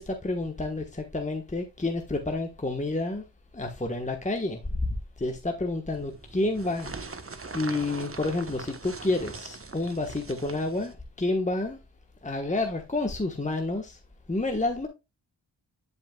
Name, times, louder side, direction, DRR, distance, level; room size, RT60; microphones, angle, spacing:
voice 1, 0.0-3.2 3.5-4.7 5.2-6.9 7.5-11.8 12.2-14.0 14.3-14.9, left 2 dB, 15° left, 1.3 m, -29 dB
sound 1, 5.9-10.9, right 4 dB, 30° right, 1.2 m, -41 dB
10.0 x 5.5 x 2.3 m
cardioid pair, 50°, 45 cm